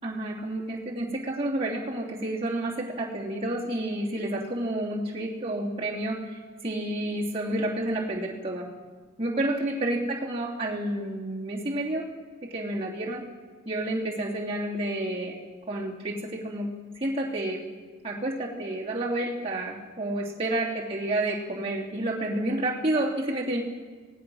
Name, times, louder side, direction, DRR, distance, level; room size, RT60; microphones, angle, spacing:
voice 1, 0.0-8.7 9.2-12.1 12.4-13.2 13.6-15.4 15.7-16.7 17.0-17.6 18.0-23.6, right 1 dB, 30° right, -5 dB, 2.9 m, -30 dB
26.0 x 18.5 x 6.3 m, 1.5 s
head